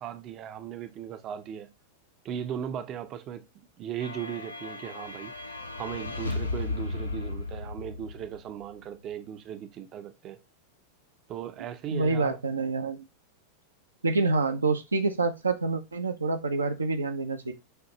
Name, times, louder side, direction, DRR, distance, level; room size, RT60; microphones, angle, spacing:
voice 1, 0.0-1.7 2.2-3.5 3.8-5.3 5.7-10.4 11.3-12.4, right 9 dB, 35° right, 0.5 m, -37 dB
sound 1, 4.0-8.7, left 3 dB, 80° left, 0.5 m, -35 dB
voice 2, 11.9-13.0 14.0-17.5, right 3 dB, 75° right, 0.5 m, -27 dB
6.5 x 2.5 x 3.0 m
figure-of-eight pair, 90°, 0 cm